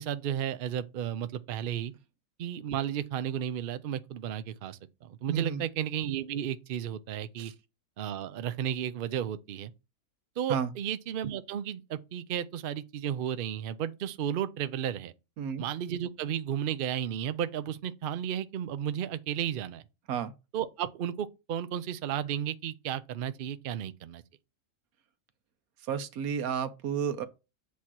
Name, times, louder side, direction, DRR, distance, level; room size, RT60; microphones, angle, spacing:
voice 1, 0.0-1.9 2.4-7.5 8.0-9.7 10.4-15.1 15.6-19.8 20.5-24.2, right 9 dB, 90° right, 0.4 m, -33 dB
voice 2, 5.3-5.6 7.4-7.5 10.5-10.7 15.4-15.6 20.1-20.3 25.9-27.3, right 7 dB, 75° right, 1.2 m, -31 dB
8.3 x 2.8 x 6.1 m
omnidirectional pair, 1.6 m